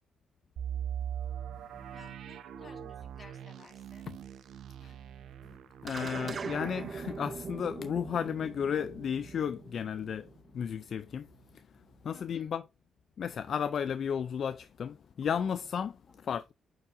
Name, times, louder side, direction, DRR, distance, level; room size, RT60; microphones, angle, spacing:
sound 1, 0.6-10.3 10.6-10.7 11.2-11.5, right 9 dB, 75° right, 0.7 m, -43 dB
voice 1, 1.9-4.1 12.1-12.5 16.1-16.3, left 4 dB, 35° left, 2.1 m, -56 dB
voice 2, 5.8-10.3 10.5-11.3 12.0-12.6 13.2-16.0 16.2-16.5, left 7 dB, 55° left, 0.4 m, -33 dB
sound 2, 5.9-10.5, right 5 dB, 40° right, 0.6 m, -41 dB
8.5 x 4.8 x 2.6 m
cardioid pair, 90°, 0 cm